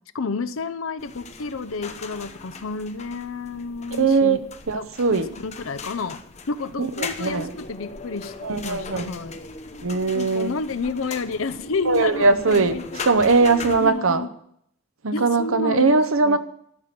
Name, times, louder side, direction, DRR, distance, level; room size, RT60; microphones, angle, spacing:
voice 1, 0.1-4.4 4.7-4.9 5.4-6.2 6.5-8.3 8.6-9.4 10.1-12.8 13.8-14.3 15.1-16.4, left 4 dB, 80° left, 13 dB, 0.6 m, -30 dB
sound 1, 1.0-13.9, left 4 dB, 30° left, 0.8 m, -38 dB
voice 2, 4.0-4.4 4.7-5.4 6.8-7.5 8.4-9.1 9.8-10.6 11.9-14.3 15.0-16.4, right 3 dB, 85° right, 10 dB, 0.9 m, -20 dB
12.5 x 6.0 x 9.3 m, 0.70 s
head